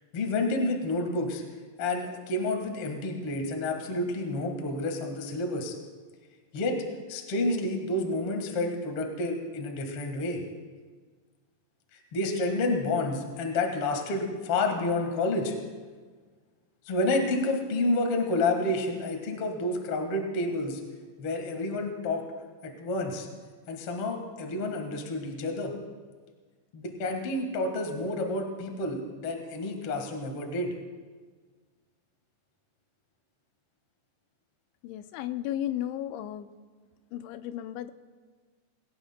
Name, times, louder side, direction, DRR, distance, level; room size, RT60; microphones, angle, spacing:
voice 1, 0.1-1.4 1.8-5.7 6.5-6.8 7.1-10.4 11.9-15.6 16.8-20.8 21.2-22.2 22.6-23.3 23.7-25.7 26.7-30.7, left 2 dB, 65° left, 4 dB, 1.4 m, -29 dB
voice 2, 34.8-36.5 37.1-37.9, left 12 dB, 90° left, 11 dB, 2.9 m, -34 dB
21.5 x 17.5 x 2.2 m, 1.5 s
omnidirectional pair, 5.3 m